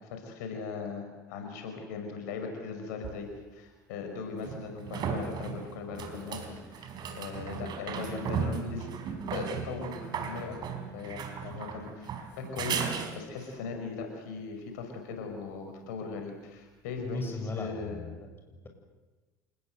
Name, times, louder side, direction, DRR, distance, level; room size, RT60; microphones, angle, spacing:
voice 1, 0.1-8.9 9.3-10.6 10.9-18.0, left 4 dB, 70° left, 4 dB, 5.7 m, -39 dB
sound 1, 3.0-3.1 4.4-13.6 17.0-17.1, right 7 dB, 50° right, 4.4 m, -36 dB
voice 2, 17.0-18.7, left 3 dB, 25° left, 5 dB, 6.5 m, -38 dB
28.5 x 20.0 x 8.1 m, 1.2 s
hypercardioid pair, 70°, 10 cm